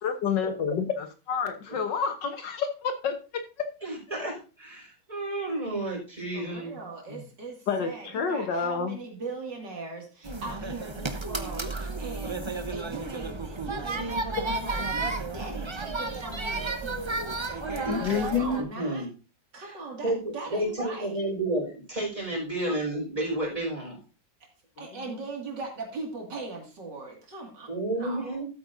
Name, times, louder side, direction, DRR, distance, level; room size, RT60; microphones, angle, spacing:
voice 1, 0.0-3.2 7.7-8.9 17.9-18.6 25.1-25.2, left 6 dB, 70° left, 7 dB, 1.7 m, -28 dB
voice 2, 3.8-6.7 7.1-7.2 17.8-18.2 18.8-19.1 19.6-19.8 20.0-24.0 27.7-28.5, right 1 dB, 20° right, -3 dB, 5.3 m, -31 dB
voice 3, 6.3-17.2 18.2-19.0 19.5-21.2 24.8-27.7 28.0-28.4, right 3 dB, 65° right, 1 dB, 2.9 m, -40 dB
sound 1, 10.2-18.6, right 3 dB, 35° right, 0.4 m, -32 dB
13.0 x 8.6 x 2.7 m, 0.34 s
omnidirectional pair, 2.0 m